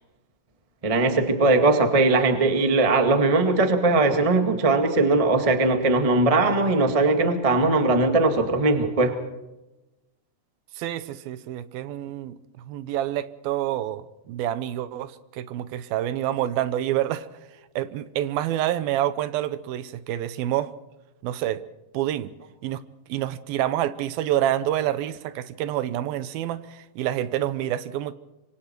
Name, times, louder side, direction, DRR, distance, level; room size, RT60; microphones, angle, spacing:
voice 1, 0.8-9.2, right 3 dB, 55° right, 0.3 m, -20 dB
voice 2, 10.8-12.4 12.7-17.3 17.8-20.7 21.2-21.6 21.9-22.3 22.6-22.8 23.1-28.1, right 12 dB, 75° right, 2.5 m, -27 dB
26.0 x 25.0 x 4.6 m
omnidirectional pair, 4.5 m